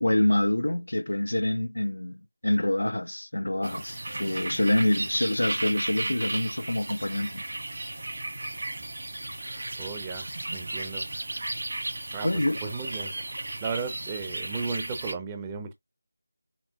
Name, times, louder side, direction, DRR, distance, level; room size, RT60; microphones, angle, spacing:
voice 1, 0.0-7.4 12.2-12.6, left 1 dB, 70° left, 0.3 m, -26 dB
sound 1, 3.6-15.1, right 2 dB, 50° right, 1.5 m, -35 dB
voice 2, 9.8-11.1 12.1-12.3 12.6-13.1 13.6-15.7, right 5 dB, 15° right, 0.6 m, -35 dB
6.0 x 2.1 x 3.7 m
figure-of-eight pair, 165°, 0 cm